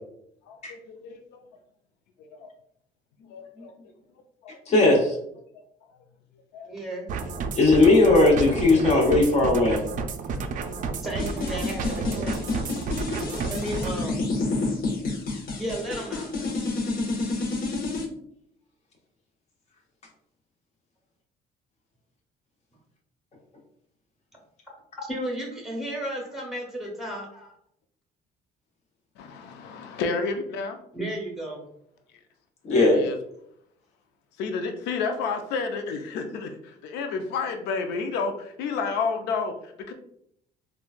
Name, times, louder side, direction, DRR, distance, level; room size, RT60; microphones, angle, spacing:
voice 1, 0.5-0.8 1.0-1.2 2.4-2.5 3.3-3.7 4.4-4.6 6.5-6.7 11.2-11.6 15.9-16.0 29.2-30.8 32.7-33.2 34.4-36.5 36.8-38.3 38.6-39.5 39.9-40.0, left 4 dB, 85° left, 6 dB, 0.5 m, -30 dB
voice 2, 4.7-5.1 7.5-9.8 32.6-33.0, left 2 dB, 40° left, -2 dB, 1.0 m, -18 dB
voice 3, 6.7-7.1 10.3-10.4 10.8-14.2 15.6-16.7 25.0-27.6 30.9-31.7, right 1 dB, ahead, -1 dB, 1.0 m, -34 dB
sound 1, 7.1-13.9, right 4 dB, 50° right, 0.4 m, -31 dB
sound 2, 11.2-18.0, left 3 dB, 60° left, 0.8 m, -29 dB
3.7 x 2.3 x 2.4 m, 0.72 s
cardioid pair, 110°, 17 cm